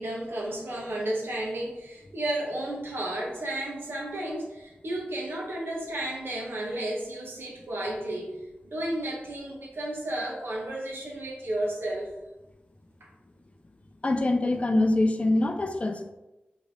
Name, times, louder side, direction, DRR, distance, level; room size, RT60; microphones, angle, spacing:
voice 1, 0.0-12.1, right 1 dB, 80° right, -3 dB, 0.8 m, -33 dB
voice 2, 14.0-16.1, left 2 dB, 35° left, 6 dB, 0.4 m, -24 dB
2.8 x 2.5 x 3.3 m, 1.0 s
cardioid pair, 45°, 4 cm